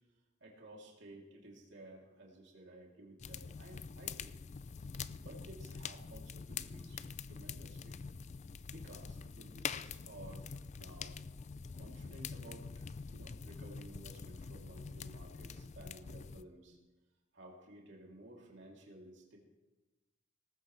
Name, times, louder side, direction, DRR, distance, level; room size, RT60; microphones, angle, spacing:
voice 1, 0.4-4.4 4.8-8.0 8.6-11.1 11.7-16.8 17.3-19.4, right 1 dB, 65° right, -2 dB, 3.0 m, -55 dB
sound 1, 3.2-16.4, left 5 dB, 35° left, 0.4 m, -45 dB
18.5 x 15.0 x 3.3 m, 1.1 s
head